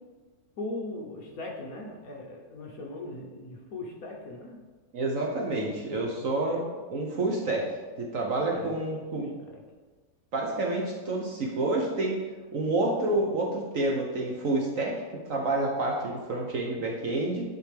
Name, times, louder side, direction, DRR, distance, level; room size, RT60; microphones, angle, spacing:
voice 1, 0.6-4.6 5.4-5.7 6.1-6.7 8.5-9.6, left 2 dB, 60° left, 0 dB, 1.2 m, -40 dB
voice 2, 4.9-6.6 6.9-7.6 8.0-9.3 10.3-12.2 12.5-14.9 15.3-17.4, right 2 dB, 55° right, -1 dB, 1.0 m, -28 dB
10.5 x 4.5 x 3.3 m, 1.3 s
omnidirectional pair, 2.0 m